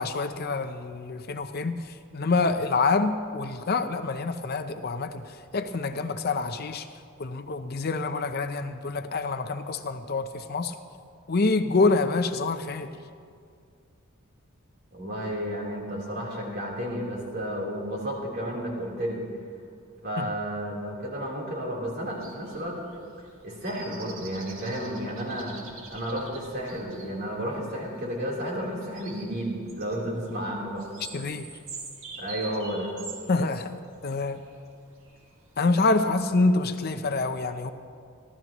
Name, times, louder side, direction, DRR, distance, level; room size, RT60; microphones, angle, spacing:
voice 1, 0.0-6.9 7.2-10.7 11.3-12.9 20.2-20.3 31.1-31.5 33.3-33.8 34.0-34.4 35.6-37.7, left 3 dB, 50° left, 9 dB, 0.6 m, -26 dB
voice 2, 14.9-19.2 20.0-22.8 23.4-25.6 25.9-30.9 32.2-32.9, equal, 50° right, -4 dB, 3.7 m, -32 dB
sound 1, 22.1-36.0, right 4 dB, 70° right, 2.1 m, -46 dB
29.0 x 12.5 x 3.1 m, 2.2 s
head